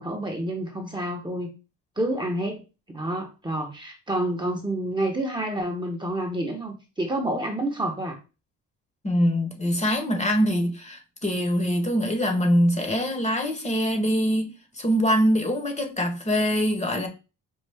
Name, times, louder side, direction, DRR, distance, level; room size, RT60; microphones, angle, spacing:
voice 1, 0.0-1.5 2.0-2.6 2.9-8.2, right 1 dB, 15° right, 0.8 m, -28 dB
voice 2, 9.0-17.1, equal, 20° left, 0.9 m, -23 dB
5.4 x 2.3 x 3.4 m
cardioid pair, 100°, 33 cm